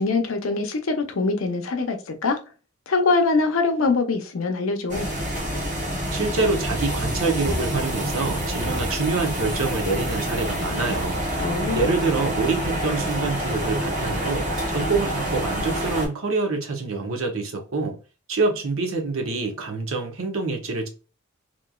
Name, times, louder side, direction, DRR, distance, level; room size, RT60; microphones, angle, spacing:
voice 1, 0.0-2.4 2.9-5.1 11.4-11.9, left 3 dB, 70° left, 0.6 m, -23 dB
sound 1, 4.9-16.1, equal, 35° right, 1.2 m, -27 dB
voice 2, 6.1-11.2 11.7-18.0 18.3-20.9, right 3 dB, 70° right, 0.8 m, -26 dB
3.0 x 2.5 x 2.3 m
head